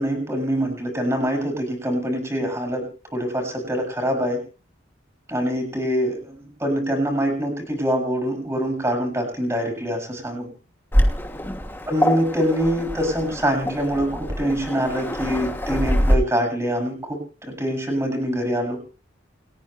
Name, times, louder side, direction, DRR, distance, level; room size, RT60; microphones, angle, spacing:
voice 1, 0.0-4.4 5.3-10.5 11.9-18.8, equal, 15° right, 2 dB, 7.4 m, -24 dB
Waves surf, 10.9-16.1, equal, 10° left, 2.7 m, -24 dB
30.0 x 10.5 x 3.3 m, 0.35 s
head